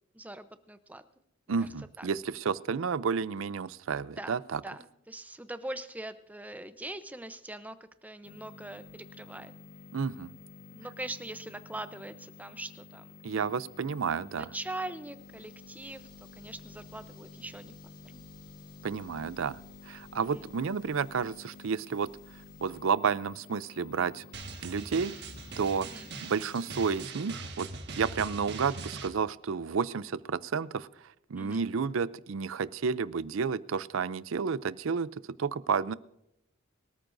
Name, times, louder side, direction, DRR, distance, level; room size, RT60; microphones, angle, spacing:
voice 1, 0.1-1.0 1.6-1.7 2.0-2.1 4.0-4.3 4.6-9.5 10.7-13.1 14.3-16.1 16.4-17.7 18.0-18.2 20.1-20.5 25.8-26.1 31.4-31.6, right 2 dB, 10° right, 10 dB, 0.7 m, -42 dB
voice 2, 1.5-4.6 9.9-10.3 13.2-14.5 18.8-19.6 19.9-22.1 22.6-24.3 24.6-25.1 25.6-25.9 26.2-27.7 28.0-30.9 31.3-35.1 35.4-35.9, right 5 dB, 70° right, 17 dB, 0.5 m, -31 dB
sound 1, 8.2-27.1, left 3 dB, 45° left, 0.5 m, -51 dB
sound 2, 15.0-22.8, left 1 dB, 25° left, 5.5 m, -61 dB
Drum, 24.3-29.1, right 3 dB, 55° right, 1.7 m, -41 dB
24.0 x 13.5 x 2.6 m, 0.85 s
head